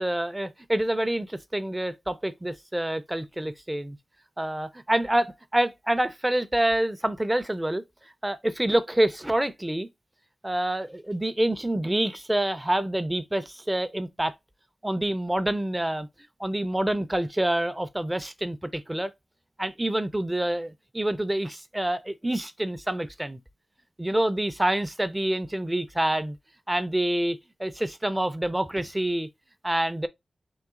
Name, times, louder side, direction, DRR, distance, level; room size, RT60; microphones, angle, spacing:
voice 1, 0.0-4.0 4.4-7.8 8.2-9.9 10.4-14.3 14.8-16.1 16.4-19.1 19.6-23.4 24.0-26.4 26.7-29.3 29.6-30.1, right 1 dB, 10° right, 0.4 m, -27 dB
3.8 x 2.7 x 3.5 m
wide cardioid pair, 115°, 0 cm